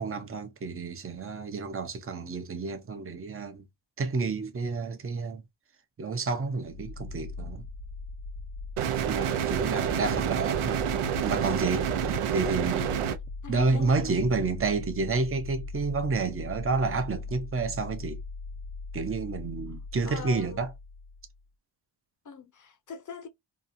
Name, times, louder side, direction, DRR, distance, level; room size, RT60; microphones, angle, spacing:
voice 1, 0.0-3.6 4.0-5.4 6.0-7.7 9.0-10.9 11.2-12.9 13.5-18.2 18.9-20.7, right 4 dB, 30° right, 0.5 m, -30 dB
sound 1, 6.6-21.4, left 3 dB, 90° left, 0.8 m, -40 dB
sound 2, 8.8-13.2, right 9 dB, 90° right, 0.6 m, -28 dB
voice 2, 9.2-10.1 13.4-14.3 20.0-20.7 22.2-23.3, left 6 dB, 40° left, 0.6 m, -43 dB
2.8 x 2.3 x 2.5 m
wide cardioid pair, 105°, 49 cm